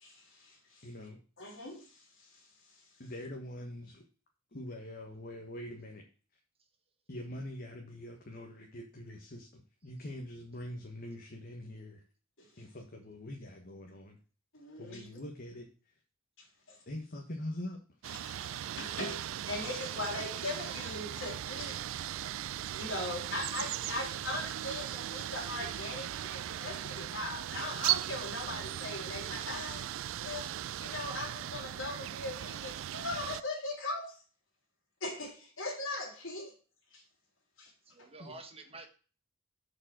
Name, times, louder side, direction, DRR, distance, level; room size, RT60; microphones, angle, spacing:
voice 1, 0.0-0.9 1.4-2.3 12.4-12.6 14.5-15.1 16.7-16.8 18.1-21.8 22.8-29.8 30.2-34.2 35.0-36.5 36.9-37.0 37.6-37.7, left 2 dB, 70° left, 3.2 m, -40 dB
voice 2, 0.8-1.2 3.0-4.0 4.5-6.0 7.1-12.0 12.6-14.2 14.8-15.7 16.9-17.8 38.2-38.4, left 1 dB, 45° left, 1.4 m, -43 dB
sound 1, 18.0-33.4, right 12 dB, 70° right, 0.3 m, -38 dB
voice 3, 20.0-20.4 37.9-38.9, right 3 dB, 30° right, 1.2 m, -50 dB
6.6 x 5.3 x 6.2 m
head